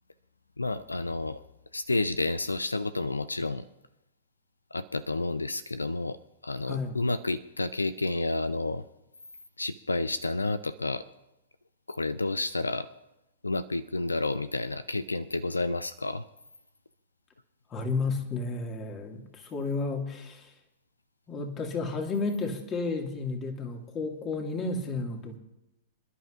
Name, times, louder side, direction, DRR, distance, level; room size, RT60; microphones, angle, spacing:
voice 1, 0.6-1.4 1.7-3.7 4.7-6.2 6.4-8.8 9.6-11.0 11.9-12.9 13.4-16.3, left 2 dB, 90° left, 15 dB, 0.4 m, -30 dB
voice 2, 6.7-7.1 17.7-20.5 21.3-25.4, left 3 dB, 25° left, 3 dB, 2.1 m, -32 dB
26.5 x 11.0 x 2.5 m, 0.92 s
figure-of-eight pair, 105°, 0 cm